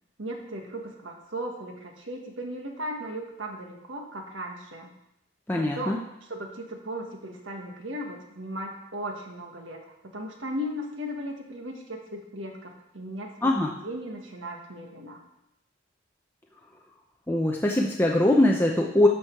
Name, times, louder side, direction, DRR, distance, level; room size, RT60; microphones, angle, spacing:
voice 1, 0.2-4.9 5.5-6.0 6.3-13.5 13.8-15.2, equal, 70° right, 2 dB, 1.6 m, -37 dB
voice 2, 5.5-6.0 13.4-13.7 17.3-19.1, left 1 dB, 10° left, -1 dB, 0.6 m, -22 dB
12.0 x 6.3 x 4.6 m, 0.84 s
head